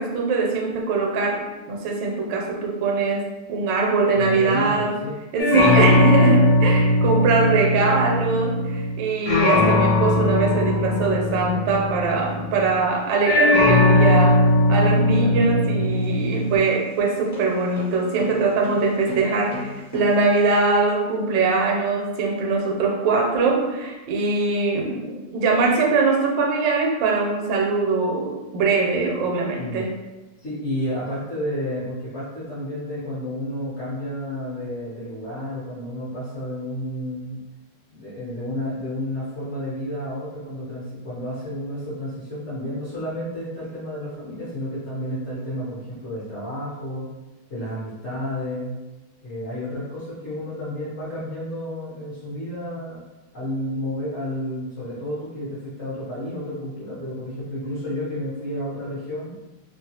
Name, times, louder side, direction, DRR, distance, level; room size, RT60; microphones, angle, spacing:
voice 1, 0.0-4.9 5.3-29.9, right 3 dB, 80° right, 1 dB, 1.2 m, -22 dB
voice 2, 4.1-5.2 6.7-6.9 15.2-15.9 29.6-29.9 30.4-37.4 37.9-47.1 47.5-48.8 49.2-53.0 53.3-59.3, left 1 dB, 50° left, -9 dB, 0.9 m, -31 dB
sound 1, 5.4-9.0 9.3-12.8 13.3-16.6, left 2 dB, 70° left, 1.1 m, -19 dB
sound 2, 15.8-20.6, left 1 dB, 20° left, 0.7 m, -37 dB
2.9 x 2.2 x 2.7 m, 1.1 s
omnidirectional pair, 1.9 m